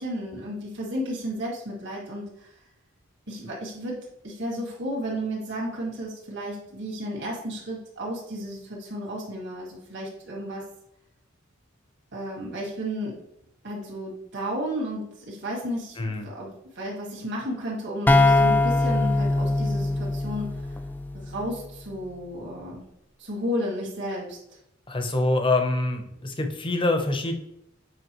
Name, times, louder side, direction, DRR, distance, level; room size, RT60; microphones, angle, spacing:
voice 1, 0.0-2.5 3.3-10.7 12.1-13.2 13.6-20.7 21.1-22.8 23.2-24.4, equal, 60° right, -3 dB, 2.0 m, -33 dB
voice 2, 16.0-16.3 24.9-27.3, left 2 dB, 25° left, 6 dB, 0.8 m, -25 dB
sound 1, 18.1-21.7, left 2 dB, 10° left, 0.3 m, -22 dB
7.9 x 5.1 x 3.0 m, 0.80 s
head